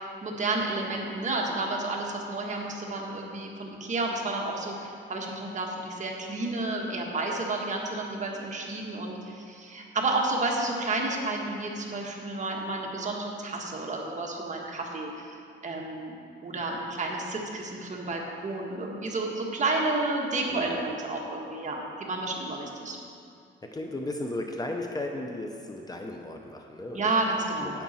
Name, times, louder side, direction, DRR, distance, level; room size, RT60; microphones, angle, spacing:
voice 1, 0.2-15.3 15.6-16.2 16.4-23.0 26.9-27.8, right 2 dB, 40° right, -1 dB, 1.5 m, -31 dB
voice 2, 20.5-20.8 23.6-27.3 27.6-27.8, left 1 dB, 20° left, 2 dB, 0.7 m, -35 dB
10.5 x 8.3 x 4.3 m, 2.4 s
cardioid pair, 110°, 20 cm